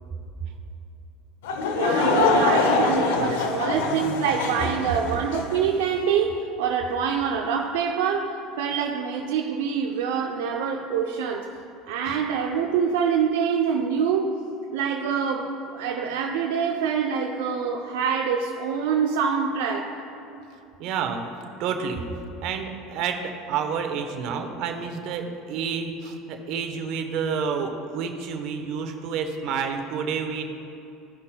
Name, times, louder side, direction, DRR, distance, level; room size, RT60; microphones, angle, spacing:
Laughter / Crowd, 1.4-5.6, left 4 dB, 85° left, 0.6 m, -24 dB
voice 1, 1.7-11.5 11.9-14.4 14.7-20.0, right 7 dB, 85° right, 1 dB, 0.5 m, -25 dB
voice 2, 20.8-21.2 21.6-22.0 22.4-30.4, right 6 dB, 65° right, 5 dB, 0.9 m, -29 dB
15.0 x 5.5 x 2.2 m, 2.7 s
supercardioid pair, 95°, 0 cm